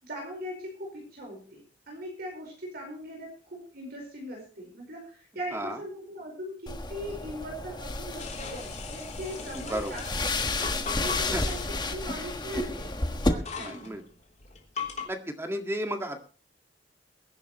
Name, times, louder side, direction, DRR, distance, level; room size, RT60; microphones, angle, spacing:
voice 1, 0.0-10.3 11.0-13.0 13.3-14.0, equal, 60° right, 1 dB, 4.9 m, -40 dB
sound 1, 6.7-13.3, left 2 dB, 25° left, 1.5 m, -32 dB
sound 2, 8.2-15.1, left 5 dB, 40° left, 3.4 m, -40 dB
voice 2, 13.6-14.0 15.1-16.2, equal, 15° right, 5 dB, 1.9 m, -32 dB
22.5 x 11.0 x 3.1 m, 0.38 s
head